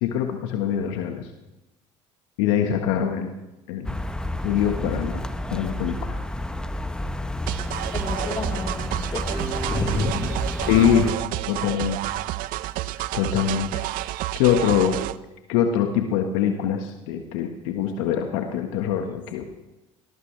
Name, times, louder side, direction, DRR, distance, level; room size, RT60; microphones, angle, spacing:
voice 1, 0.0-1.3 2.4-3.3 3.7-4.0 4.4-5.2 5.5-6.1 10.6-11.1 11.5-12.0 13.1-13.8 14.3-15.0 15.5-19.4, left 9 dB, 80° left, 4 dB, 1.6 m, -23 dB
sound 1, 3.8-11.1, left 1 dB, 5° left, 1.1 m, -30 dB
sound 2, 7.5-15.2, right 16 dB, 65° right, 0.6 m, -30 dB
voice 2, 7.9-10.3 19.1-19.2, left 3 dB, 30° left, 0 dB, 4.0 m, -30 dB
sound 3, 9.3-11.7, right 4 dB, 25° right, 3.9 m, -38 dB
20.0 x 19.5 x 3.4 m, 0.99 s
hypercardioid pair, 75°, 15 cm